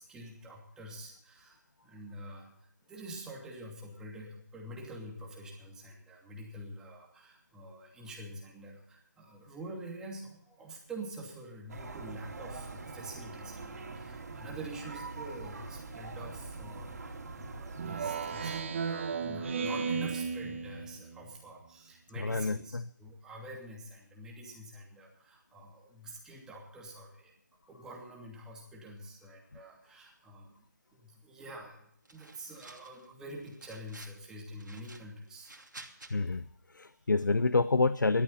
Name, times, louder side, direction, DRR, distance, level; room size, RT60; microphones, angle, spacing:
voice 1, 0.0-27.3 27.7-30.6 30.9-35.6 36.1-36.4, right 1 dB, 5° right, -1 dB, 2.7 m, -47 dB
sound 1, 11.7-18.6, right 3 dB, 60° right, 3.4 m, -44 dB
Speech synthesizer, 17.8-21.3, right 5 dB, 40° right, 1.1 m, -34 dB
voice 2, 22.2-22.9 36.1-38.2, left 3 dB, 90° left, 16 dB, 0.6 m, -28 dB
sound 2, 32.1-33.1 33.4-34.2 34.6-36.1, right 2 dB, 90° right, 2.8 m, -52 dB
17.0 x 13.0 x 4.2 m, 0.70 s
figure-of-eight pair, 155°, 10 cm